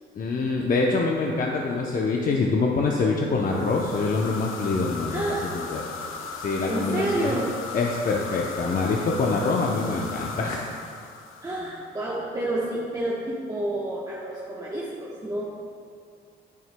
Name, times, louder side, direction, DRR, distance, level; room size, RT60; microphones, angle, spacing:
voice 1, 0.2-5.2 5.5-5.8 6.4-7.4 7.7-10.6, left 3 dB, 45° left, -1 dB, 0.7 m, -25 dB
sound 1, 3.4-11.9, left 4 dB, 85° left, 0.7 m, -37 dB
voice 2, 5.1-5.6 6.7-7.5 11.4-15.4, right 1 dB, 20° right, -6 dB, 1.0 m, -29 dB
9.4 x 9.2 x 2.2 m, 2.3 s
cardioid pair, 90°, 20 cm